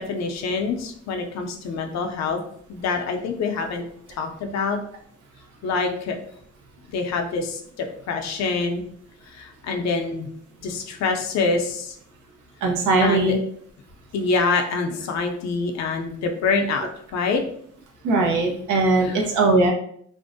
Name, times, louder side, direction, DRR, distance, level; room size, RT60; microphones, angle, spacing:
voice 1, 0.0-2.4 2.7-4.8 5.6-6.2 6.9-8.8 9.3-10.3 10.6-11.9 13.0-13.3 14.1-17.4 19.0-19.2, left 4 dB, 60° left, 4 dB, 0.5 m, -26 dB
voice 2, 12.6-13.4 18.0-19.7, right 2 dB, 80° right, 1 dB, 0.7 m, -19 dB
2.5 x 2.0 x 2.6 m, 0.63 s
cardioid pair, 90°, 30 cm